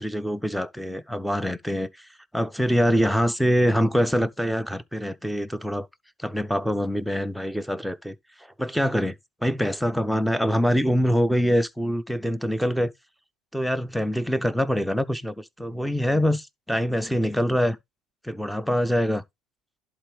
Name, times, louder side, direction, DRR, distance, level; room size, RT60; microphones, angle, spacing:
voice 1, 0.0-1.9 2.3-5.9 6.2-8.1 8.6-9.2 9.4-12.9 13.5-17.8 18.2-19.2, equal, ahead, 0.7 m, -24 dB
11.5 x 3.9 x 3.4 m
hypercardioid pair, 75°, 0 cm